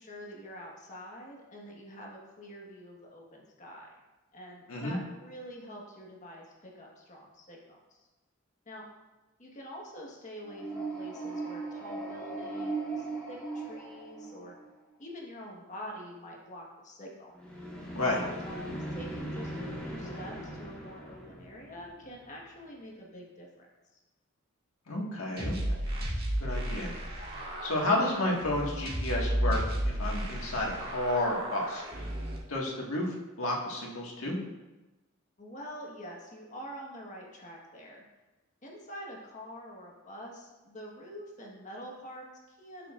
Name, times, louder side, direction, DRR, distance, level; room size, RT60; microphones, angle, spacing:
voice 1, 0.0-3.9 4.3-8.1 8.7-8.9 9.4-14.5 15.0-17.3 18.2-23.7 35.4-38.0 38.6-42.9, equal, 35° left, -2 dB, 1.4 m, -46 dB
sound 1, 10.4-14.8 17.3-22.3, right 2 dB, 5° left, 1.6 m, -39 dB
voice 2, 24.9-25.9 26.4-26.9 27.2-32.1 32.5-34.4, left 1 dB, 80° left, -2 dB, 1.8 m, -31 dB
sound 2, 25.4-32.4, right 1 dB, 50° right, 1.7 m, -33 dB
11.5 x 6.8 x 2.5 m, 1.1 s
head